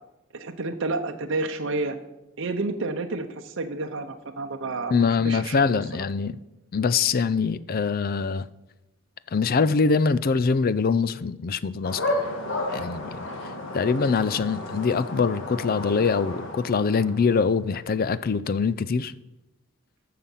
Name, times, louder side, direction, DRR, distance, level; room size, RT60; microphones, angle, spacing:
voice 1, 0.3-2.0 2.4-5.8, right 3 dB, 65° right, 0.8 m, -30 dB
voice 2, 4.9-6.4 6.7-8.5 9.3-12.2 12.7-13.2 13.7-19.1, left 5 dB, 45° left, 0.4 m, -23 dB
sound 1, 11.8-17.6, left 2 dB, 65° left, 1.9 m, -32 dB
14.0 x 5.7 x 5.6 m
head